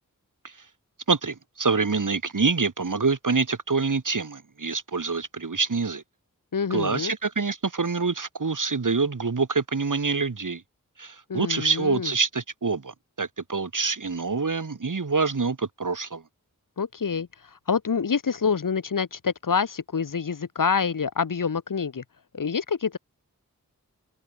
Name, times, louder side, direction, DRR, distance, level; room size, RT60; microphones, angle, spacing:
voice 1, 1.1-6.0 6.7-10.6 11.0-16.2, right 4 dB, 65° right, 2.0 m, -26 dB
voice 2, 6.5-7.1 11.3-12.1 16.8-17.3 17.7-22.0 22.3-23.0, left 6 dB, 70° left, 1.0 m, -26 dB
wide cardioid pair, 45°, 33 cm